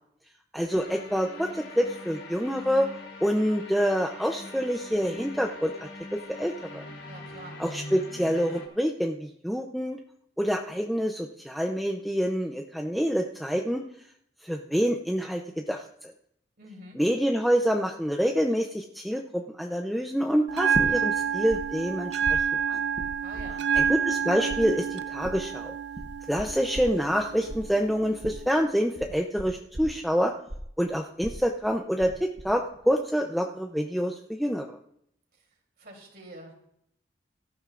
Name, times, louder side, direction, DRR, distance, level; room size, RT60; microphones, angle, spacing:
voice 1, 0.5-2.9 3.2-6.8 7.6-10.0 10.4-13.8 14.4-15.8 17.0-22.8 23.8-25.7 26.3-30.3 30.8-34.8, equal, ahead, 2 dB, 0.6 m, -27 dB
sound 1, 0.7-8.7, left 2 dB, 70° left, 3.3 m, -42 dB
voice 2, 7.0-7.6 16.6-17.0 23.2-23.7 35.8-36.5, right 1 dB, 60° right, 1 dB, 3.1 m, -46 dB
Bell, 20.5-28.5, right 7 dB, 75° right, 0.5 m, -29 dB
sound 2, 20.7-21.6 21.9-24.2 24.5-32.1 32.4-32.9, right 1 dB, 40° right, 1.0 m, -37 dB
17.5 x 13.5 x 2.5 m, 0.73 s
head